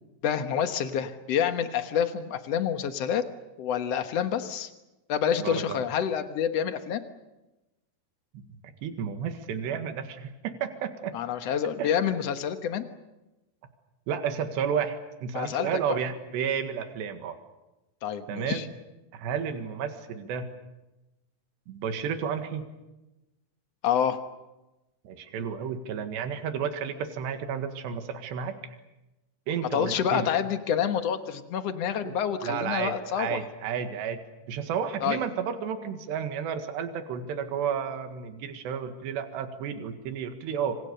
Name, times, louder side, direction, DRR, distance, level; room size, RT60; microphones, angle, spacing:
voice 1, 0.2-3.2 3.6-4.7 5.1-7.0 11.1-12.9 15.3-16.0 18.0-18.7 23.8-24.2 29.7-33.4 35.0-35.2, left 8 dB, 70° left, 8 dB, 1.5 m, -28 dB
voice 2, 5.4-5.8 8.3-11.1 11.8-11.9 14.1-17.4 18.3-18.7 19.1-20.5 21.7-22.7 25.1-28.5 29.5-30.3 32.0-32.2 32.4-34.2 34.5-40.8, right 7 dB, 80° right, 7 dB, 4.0 m, -32 dB
28.0 x 26.0 x 6.8 m, 1.0 s
omnidirectional pair, 4.9 m